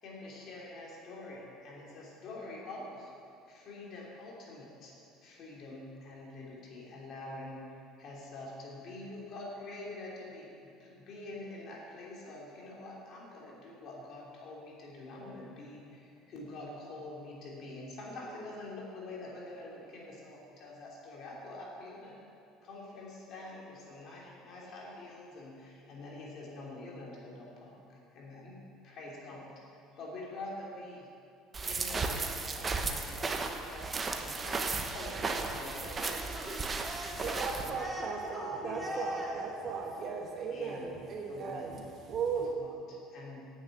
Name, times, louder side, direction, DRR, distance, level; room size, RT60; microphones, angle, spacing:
voice 1, 0.0-3.1 3.5-4.9 5.2-22.2 22.6-28.5 28.8-31.1 31.6-36.1 37.2-37.7 38.5-39.0 40.5-41.0 41.3-41.7 42.3-43.4, left 2 dB, 55° left, -4 dB, 3.0 m, -46 dB
sound 1, 31.5-37.7, right 4 dB, 25° right, 0.8 m, -35 dB
voice 2, 36.0-39.5, equal, 10° right, -4 dB, 2.8 m, -41 dB
voice 3, 37.2-42.5, right 5 dB, 50° right, 1 dB, 1.3 m, -37 dB
8.6 x 7.0 x 7.8 m, 2.5 s
supercardioid pair, 100°, 0 cm